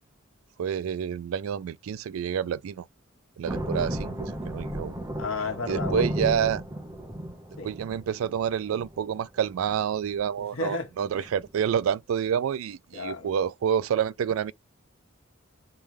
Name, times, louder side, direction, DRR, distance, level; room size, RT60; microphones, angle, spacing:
voice 1, 0.6-2.9 3.4-4.9 5.7-6.6 7.6-14.5, right 8 dB, 90° right, 0.3 m, -28 dB
sound 1, 3.4-9.2 9.5-9.8 10.1-10.4 10.7-10.8 11.0-11.7, right 1 dB, 15° right, 0.8 m, -34 dB
voice 2, 5.1-6.1 7.6-7.7 10.5-10.9 12.9-13.3, left 4 dB, 85° left, 1.5 m, -32 dB
3.3 x 3.1 x 3.3 m
head